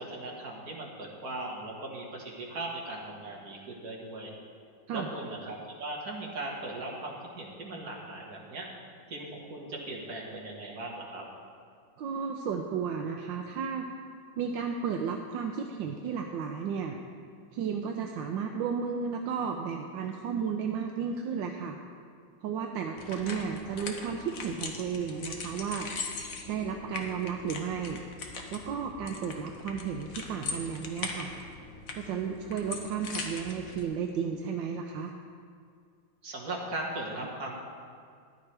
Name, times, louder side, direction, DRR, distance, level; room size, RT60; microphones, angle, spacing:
voice 1, 0.0-4.3 4.9-8.7 9.1-11.2 36.2-37.5, right 2 dB, 50° right, -2 dB, 2.0 m, -38 dB
voice 2, 12.0-13.9 14.4-17.0 17.5-21.8 22.4-25.9 26.5-28.0 28.5-31.3 31.9-35.1, right 6 dB, 80° right, 3 dB, 1.3 m, -33 dB
sound 1, 23.0-33.8, left 4 dB, 50° left, 1.3 m, -40 dB
14.5 x 11.0 x 3.3 m, 2.2 s
omnidirectional pair, 2.1 m